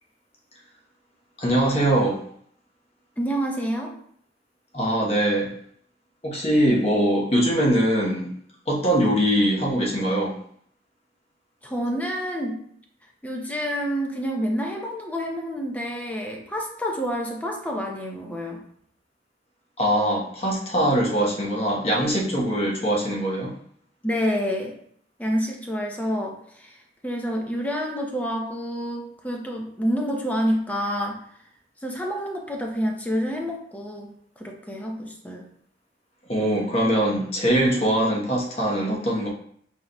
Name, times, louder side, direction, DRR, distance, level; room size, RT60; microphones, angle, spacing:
voice 1, 1.4-2.2 4.7-5.5 6.2-8.3 8.7-10.4 19.8-23.5 36.3-39.3, right 1 dB, 35° left, -3 dB, 1.0 m, -22 dB
voice 2, 3.2-4.0 11.6-12.6 13.2-18.6 24.0-24.7 25.2-26.7 27.0-31.2 31.8-35.5, equal, 10° left, 0 dB, 0.6 m, -28 dB
4.5 x 4.0 x 2.2 m, 0.64 s
head